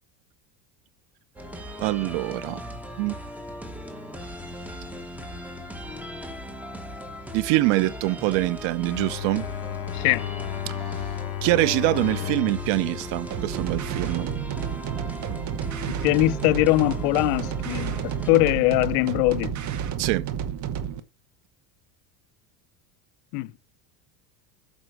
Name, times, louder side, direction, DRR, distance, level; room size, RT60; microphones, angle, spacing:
Half Time Show, 1.4-18.3, equal, 5° right, 1.2 m, -38 dB
voice 1, 1.8-2.6 3.0-3.2 7.3-9.5 10.7-10.8 11.4-14.3 20.0-20.2, right 18 dB, 60° right, 0.6 m, -24 dB
Bowed string instrument, 8.9-14.2, left 12 dB, 50° left, 1.1 m, -34 dB
voice 2, 9.9-10.3 15.9-18.0 18.3-19.5 23.3-23.5, left 20 dB, 70° left, 0.6 m, -22 dB
sound 1, 13.3-21.0, right 8 dB, 35° right, 0.9 m, -31 dB
8.0 x 5.3 x 4.7 m
supercardioid pair, 120°, 49 cm